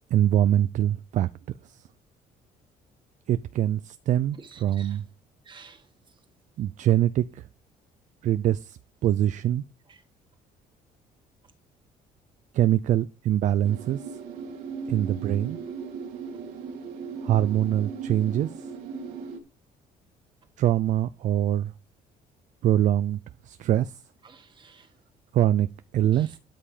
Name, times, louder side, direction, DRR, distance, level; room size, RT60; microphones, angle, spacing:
voice 1, 0.1-1.3 1.6-1.8 3.3-5.1 6.6-7.4 8.2-9.6 12.5-14.1 14.9-15.6 17.2-18.7 20.6-21.7 22.6-24.0 25.3-25.7 25.9-26.4, right 11 dB, 55° right, 0.5 m, -24 dB
voice 2, 4.4-5.0 5.5-5.9 9.9-10.0 24.2-24.9 26.1-26.3, right 5 dB, 30° right, 1.8 m, -51 dB
sound 1, 13.6-19.4, right 5 dB, 85° right, 2.8 m, -37 dB
13.0 x 5.6 x 5.0 m
cardioid pair, 125°, 15 cm